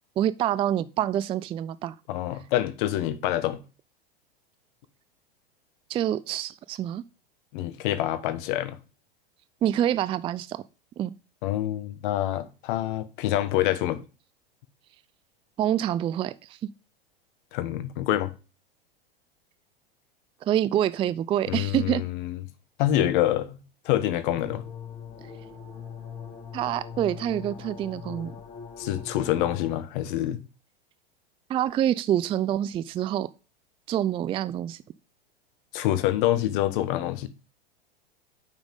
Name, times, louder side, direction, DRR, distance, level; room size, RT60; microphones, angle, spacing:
voice 1, 0.2-2.0 5.9-7.0 9.6-10.6 11.0-11.1 15.6-16.6 20.4-22.0 26.5-28.3 31.5-33.3 33.9-34.8, right 11 dB, 20° right, 0.4 m, -26 dB
voice 2, 2.1-3.6 7.5-8.8 11.4-14.0 17.5-18.3 21.5-22.4 22.8-23.6 23.8-24.6 28.8-30.4 35.7-37.3, left 13 dB, 55° left, 1.3 m, -26 dB
sound 1, 24.3-29.7, left 7 dB, 30° left, 3.7 m, -41 dB
9.0 x 6.0 x 3.6 m
hypercardioid pair, 100°, 30 cm